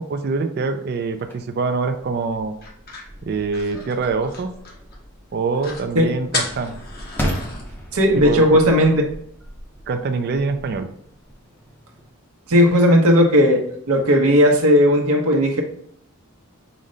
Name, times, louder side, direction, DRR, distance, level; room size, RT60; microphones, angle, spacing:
voice 1, 0.0-2.6 3.2-4.5 5.3-6.7 8.2-8.6 9.9-10.9, right 4 dB, 45° right, 8 dB, 0.3 m, -24 dB
sound 1, 1.2-12.1, equal, 10° left, 0.6 m, -35 dB
sound 2, 2.6-5.0 5.3-5.4 5.6-5.9 6.3-7.6, left 3 dB, 45° left, 0.8 m, -32 dB
voice 2, 7.9-9.0 12.5-15.6, equal, 80° right, 2 dB, 0.8 m, -15 dB
5.0 x 2.1 x 3.8 m, 0.67 s
head